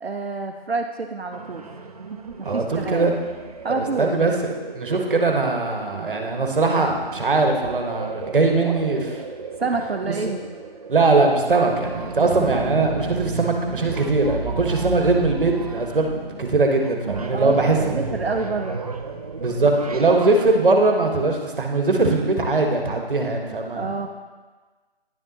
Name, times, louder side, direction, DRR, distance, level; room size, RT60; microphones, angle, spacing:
voice 1, 0.0-1.6 2.4-3.1 3.6-4.2 9.6-10.4 17.3-18.8 23.7-24.1, right 4 dB, 80° right, 4 dB, 0.7 m, -28 dB
sound 1, 1.3-20.6, right 3 dB, 40° right, 0.5 m, -33 dB
voice 2, 2.4-3.1 3.7-4.3 4.7-9.2 10.3-10.4 10.9-18.0 19.4-24.1, right 3 dB, 60° right, 3 dB, 1.3 m, -21 dB
10.5 x 7.2 x 2.8 m, 1.3 s
figure-of-eight pair, 145°, 30 cm